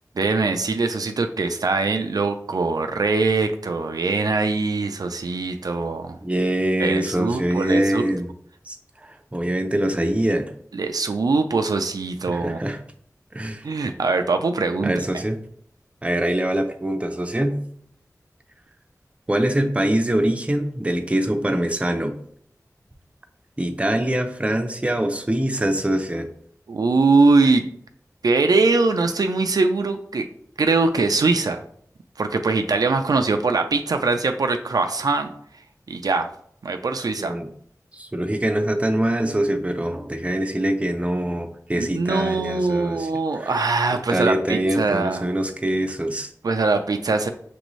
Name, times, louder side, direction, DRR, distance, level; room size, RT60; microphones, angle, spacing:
voice 1, 0.2-6.2 6.8-8.0 10.7-12.6 13.6-15.2 26.7-27.6 28.2-30.3 30.6-31.6 32.2-35.3 35.9-36.3 36.6-37.4 41.7-45.3 46.4-47.3, right 3 dB, 75° right, 6 dB, 0.3 m, -22 dB
voice 2, 6.2-8.3 8.7-8.8 9.0-10.5 12.3-12.8 13.3-13.6 14.8-15.4 16.0-17.6 19.3-22.2 23.6-26.3 37.2-37.5 37.9-43.1 43.3-43.6 44.1-46.3, right 1 dB, 20° right, 6 dB, 0.5 m, -24 dB
6.1 x 2.6 x 3.0 m, 0.65 s
wide cardioid pair, 60°, 6 cm